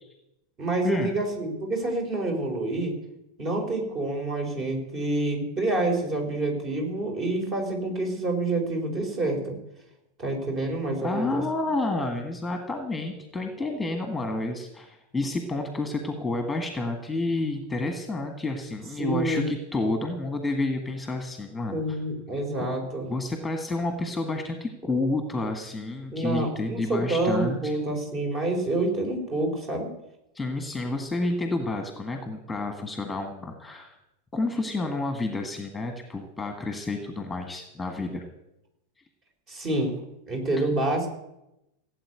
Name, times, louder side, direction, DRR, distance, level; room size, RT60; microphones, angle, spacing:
voice 1, 0.6-2.9 3.4-9.6 10.2-11.4 19.0-19.5 21.7-23.1 26.1-29.9 39.5-40.0 40.3-41.1, right 2 dB, 30° right, 3 dB, 4.4 m, -27 dB
voice 2, 11.0-22.0 23.1-27.8 30.3-34.0 34.3-38.2 40.6-40.7, left 2 dB, 10° left, 6 dB, 1.7 m, -30 dB
16.5 x 8.4 x 8.2 m, 0.89 s
figure-of-eight pair, 90°, 0 cm